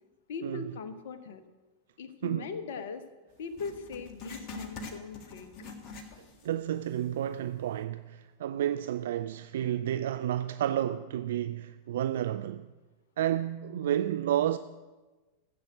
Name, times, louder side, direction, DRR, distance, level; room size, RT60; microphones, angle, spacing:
voice 1, 0.3-1.4 2.0-3.0 3.4-5.5, left 5 dB, 55° left, 1.1 m, -40 dB
Writing, 3.5-6.6 6.9-7.0 7.7-7.8, left 3 dB, 35° left, 1.8 m, -44 dB
voice 2, 6.2-12.7 13.2-14.6, right 11 dB, 60° right, 0.3 m, -31 dB
14.5 x 7.9 x 7.6 m
figure-of-eight pair, 90°, 0 cm